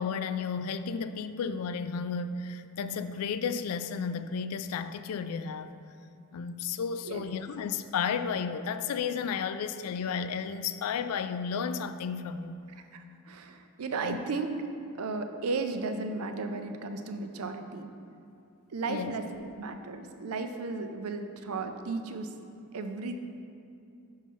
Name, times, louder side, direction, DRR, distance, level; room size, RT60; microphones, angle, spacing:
voice 1, 0.0-5.7 6.3-12.6 14.0-14.2 18.9-19.1, left 6 dB, 75° left, 12 dB, 0.3 m, -33 dB
voice 2, 12.9-14.5 15.0-17.9 18.7-22.3 22.7-23.2, right 3 dB, 75° right, 7 dB, 0.5 m, -35 dB
5.5 x 5.4 x 4.6 m, 2.7 s
head